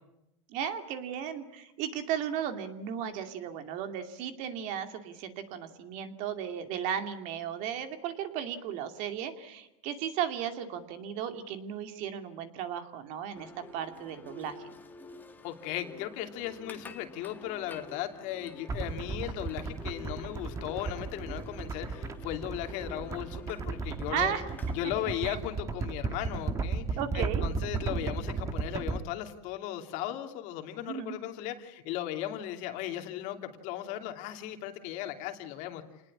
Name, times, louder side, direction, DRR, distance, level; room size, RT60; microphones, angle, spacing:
voice 1, 0.5-14.6 24.1-24.4 25.3-25.4 27.0-27.4 30.9-31.2, right 9 dB, 45° right, 7 dB, 2.5 m, -35 dB
sound 1, 13.3-24.9, left 3 dB, 10° left, 1.8 m, -49 dB
voice 2, 15.4-24.3 24.7-35.8, left 12 dB, 45° left, 5 dB, 2.8 m, -37 dB
sound 2, 18.7-29.0, right 4 dB, 20° right, 1.3 m, -35 dB
28.0 x 20.0 x 8.6 m, 0.92 s
supercardioid pair, 145°, 17 cm